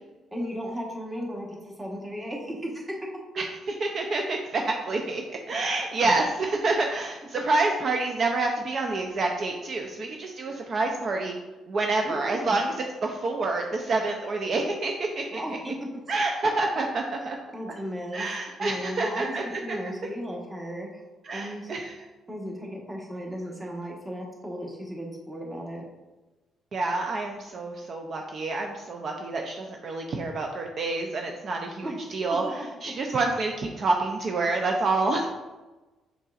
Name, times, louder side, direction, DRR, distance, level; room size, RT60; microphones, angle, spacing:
voice 1, 0.3-3.0 12.0-12.5 15.3-15.7 16.0-16.1 17.5-18.3 18.6-20.9 21.3-21.7 22.3-25.8 31.8-31.9 32.3-32.5, equal, 15° right, -1 dB, 1.1 m, -35 dB
voice 2, 3.4-11.4 11.7-15.4 16.1-17.4 18.1-19.8 21.2-21.9 26.7-35.3, right 3 dB, 50° right, 2 dB, 0.5 m, -28 dB
5.4 x 4.0 x 2.4 m, 1.1 s
cardioid pair, 90°, 0 cm